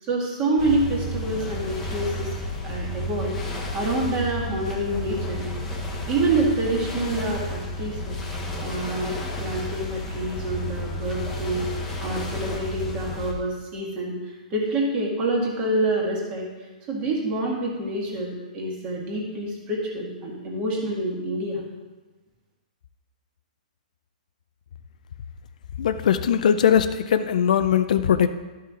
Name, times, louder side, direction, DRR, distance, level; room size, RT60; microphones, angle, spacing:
voice 1, 0.0-2.4 2.6-5.5 6.1-8.2 8.6-11.7 12.0-21.7, right 2 dB, 25° right, -2 dB, 1.9 m, -27 dB
sound 1, 0.6-13.3, equal, 10° left, 1.1 m, -31 dB
voice 2, 25.8-28.3, left 8 dB, 60° left, 10 dB, 0.4 m, -20 dB
12.5 x 5.6 x 3.8 m, 1.2 s
hypercardioid pair, 160°, 4 cm